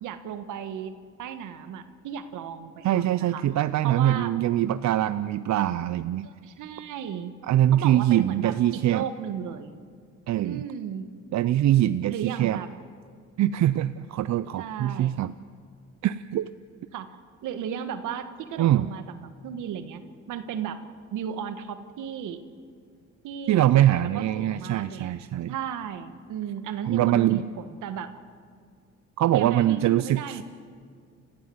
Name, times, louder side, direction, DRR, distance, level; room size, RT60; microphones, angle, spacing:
voice 1, 0.0-0.9 1.2-3.4 3.8-4.4 6.2-7.3 7.7-9.7 10.4-11.0 12.0-12.7 14.6-15.1 16.9-17.2 17.4-20.0 20.3-20.8 21.1-22.4 23.2-25.1 25.5-28.1 29.3-30.4, right 8 dB, 85° right, 9 dB, 1.6 m, -35 dB
voice 2, 2.8-6.3 7.5-9.1 10.3-10.6 11.3-12.6 13.4-15.3 16.0-16.5 18.6-18.9 23.5-25.5 26.8-27.4 29.2-30.4, right 12 dB, 65° right, 13 dB, 0.6 m, -23 dB
29.5 x 15.0 x 7.9 m, 2.1 s
cardioid pair, 90°, 30 cm